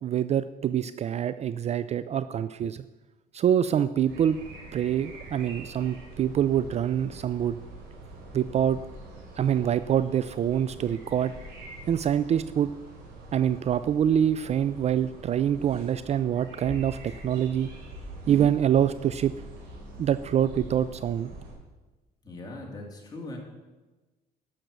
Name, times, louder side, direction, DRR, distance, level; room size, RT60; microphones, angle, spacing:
voice 1, 0.0-2.8 3.3-4.4 4.7-7.5 8.3-8.8 9.4-11.3 11.9-12.7 13.3-17.7 18.3-19.3 20.0-21.3, right 9 dB, 40° right, 14 dB, 0.3 m, -25 dB
sound 1, 4.0-21.5, right 1 dB, 85° right, 3.8 m, -44 dB
voice 2, 22.2-23.4, left 2 dB, 25° left, -1 dB, 2.9 m, -40 dB
12.5 x 5.9 x 6.6 m, 1.2 s
cardioid pair, 110°, 17 cm